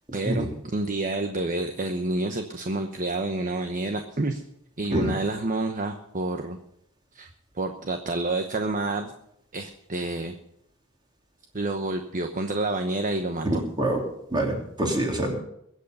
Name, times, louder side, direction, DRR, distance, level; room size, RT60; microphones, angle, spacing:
voice 1, 0.1-4.4 4.8-6.6 7.1-7.3 7.5-9.1 9.5-10.3 11.5-13.6, right 2 dB, 40° right, 6 dB, 1.0 m, -28 dB
voice 2, 14.3-15.3, right 1 dB, 20° right, 0 dB, 3.7 m, -25 dB
22.0 x 8.2 x 5.5 m, 0.75 s
head